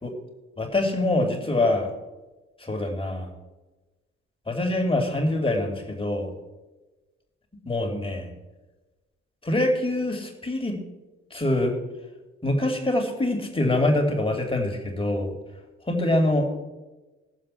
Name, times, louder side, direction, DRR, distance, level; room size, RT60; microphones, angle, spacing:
voice 1, 0.6-1.9 2.7-3.3 4.5-6.3 7.7-8.3 9.4-10.8 11.3-11.7 12.4-15.3 15.9-16.5, left 1 dB, 15° left, 2 dB, 3.0 m, -24 dB
19.0 x 7.4 x 4.5 m, 1.1 s
figure-of-eight pair, 40°, 32 cm